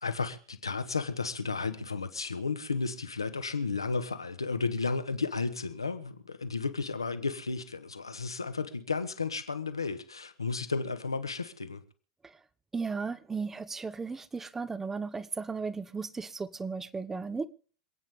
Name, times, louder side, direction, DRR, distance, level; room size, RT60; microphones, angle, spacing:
voice 1, 0.0-11.8, left 4 dB, 85° left, 1.4 m, -33 dB
voice 2, 12.7-17.5, right 4 dB, 15° right, 1.0 m, -35 dB
27.0 x 9.1 x 3.7 m
figure-of-eight pair, 90°, 2 cm